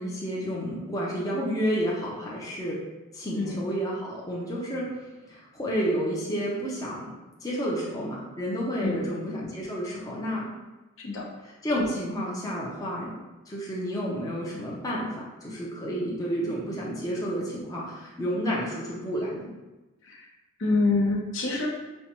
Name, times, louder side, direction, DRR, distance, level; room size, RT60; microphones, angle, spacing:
voice 1, 0.0-2.8 3.1-4.9 5.3-7.1 7.4-10.5 11.4-13.1 13.5-15.1 15.4-19.5, equal, 15° left, -5 dB, 0.6 m, -30 dB
voice 2, 20.6-21.7, left 3 dB, 65° left, -1 dB, 0.7 m, -25 dB
5.2 x 2.2 x 2.9 m, 1.1 s
head